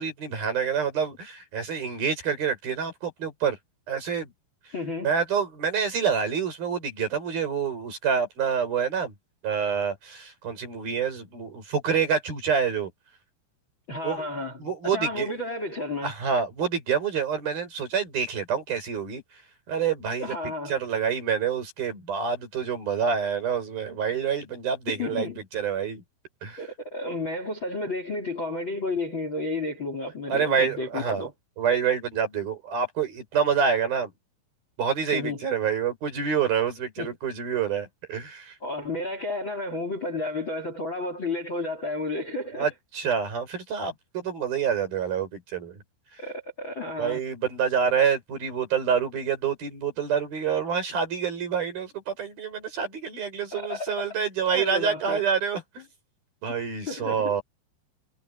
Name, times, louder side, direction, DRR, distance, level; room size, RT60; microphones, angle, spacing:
voice 1, 0.0-3.6 3.9-4.3 5.0-9.1 9.4-12.9 14.0-14.3 14.6-15.4 16.0-19.2 19.7-20.4 20.7-26.0 26.4-26.6 30.3-31.2 31.6-34.1 34.8-38.5 42.5-45.8 46.1-46.2 47.0-55.9 56.4-57.4, right 7 dB, 45° right, 7.4 m, -27 dB
voice 2, 4.7-5.1 13.9-16.1 20.2-20.7 24.9-25.4 26.6-31.3 35.1-35.4 37.0-37.1 38.6-42.7 46.2-47.2 53.5-53.9 54.5-55.2 56.9-57.4, left 2 dB, 30° left, 3.1 m, -32 dB
omnidirectional pair, 5.9 m